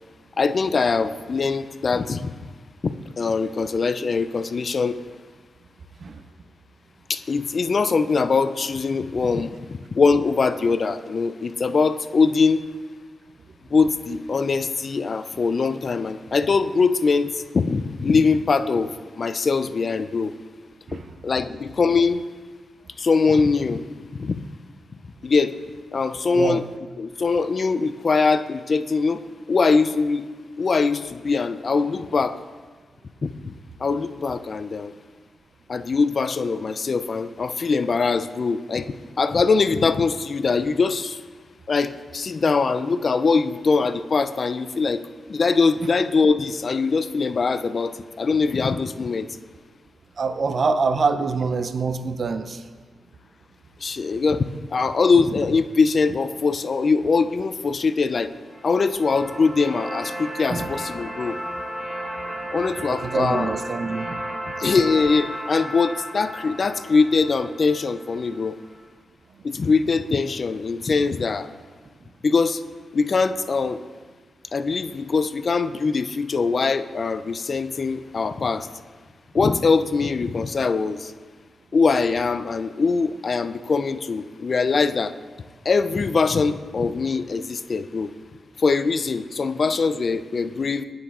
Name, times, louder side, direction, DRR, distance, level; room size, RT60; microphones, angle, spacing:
voice 1, 0.4-2.3 2.8-5.0 7.1-12.6 13.7-20.3 20.9-22.2 23.0-23.8 24.1-24.4 25.2-25.5 25.9-26.6 27.0-29.2 29.5-30.3 30.6-32.4 33.2-33.5 33.8-34.9 35.7-38.9 39.2-41.2 41.7-45.0 45.3-49.3 53.8-58.3 58.6-61.4 62.5-63.5 64.6-68.6 69.4-71.5 72.2-72.6 72.9-73.8 74.5-78.7 79.3-81.1 81.7-85.2 85.7-88.1 88.6-90.8, left 4 dB, 55° left, 12 dB, 0.3 m, -22 dB
voice 2, 50.2-52.6 60.5-60.7 62.9-64.2, right 4 dB, 60° right, 11 dB, 0.4 m, -25 dB
sound 1, 58.4-68.5, right 1 dB, 20° right, 1.3 m, -34 dB
9.6 x 7.7 x 2.4 m, 1.5 s
cardioid pair, 60°, 0 cm